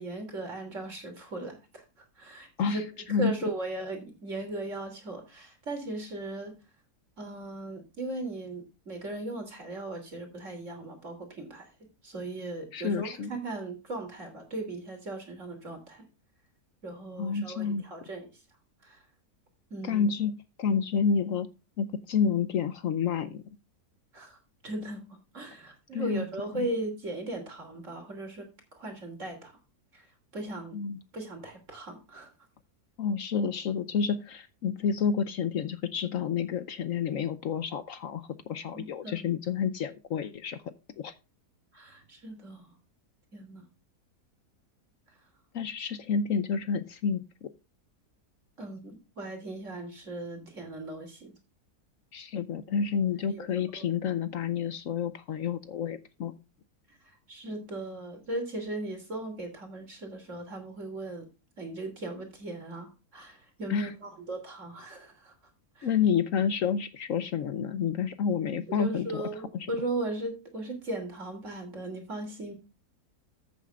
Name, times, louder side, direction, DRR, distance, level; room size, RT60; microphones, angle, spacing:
voice 1, 0.0-1.8 2.2-2.8 3.1-6.5 7.2-11.7 12.0-16.1 16.8-18.3 18.8-19.0 19.7-20.1 24.1-24.4 24.6-25.0 25.3-29.6 29.9-30.1 30.3-30.8 31.1-32.3 38.7-39.3 41.7-42.7 43.3-43.6 48.6-51.3 53.3-53.5 53.8-53.9 57.3-61.3 61.6-65.3 65.8-65.9 68.7-72.5, right 2 dB, 50° right, 4 dB, 3.5 m, -37 dB
voice 2, 12.7-13.3 17.2-17.8 19.8-21.5 21.8-23.4 25.9-26.2 26.5-26.7 30.7-31.0 33.0-41.1 45.5-47.5 52.1-56.3 63.7-63.9 65.8-69.2, left 6 dB, 65° left, 13 dB, 1.0 m, -29 dB
14.0 x 8.3 x 2.4 m, 0.28 s
omnidirectional pair, 1.6 m